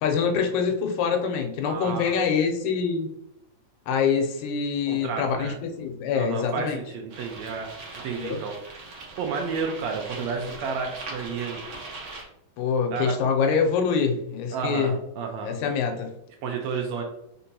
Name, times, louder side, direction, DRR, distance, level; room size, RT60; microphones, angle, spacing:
voice 1, 0.0-3.1 3.9-6.8 8.2-8.4 12.6-14.9 15.4-16.1, left 6 dB, 80° left, 3 dB, 2.0 m, -25 dB
voice 2, 1.6-2.1 4.9-5.5 6.1-7.7 8.0-8.6 9.2-11.6 12.9-13.1 14.5-15.6 16.4-17.0, right 5 dB, 80° right, 2 dB, 1.7 m, -31 dB
sound 1, 7.1-12.2, right 3 dB, 60° right, 1.4 m, -40 dB
4.5 x 4.0 x 2.8 m, 0.81 s
omnidirectional pair, 3.5 m